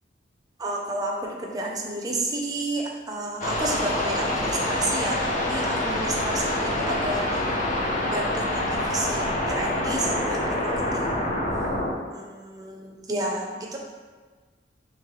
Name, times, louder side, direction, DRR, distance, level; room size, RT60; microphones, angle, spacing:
voice 1, 0.6-7.6 8.1-11.1 12.1-13.8, right 2 dB, 20° right, -1 dB, 0.5 m, -31 dB
sound 1, 3.4-11.9, left 1 dB, 45° left, 0.5 m, -26 dB
3.9 x 3.1 x 3.1 m, 1.4 s
head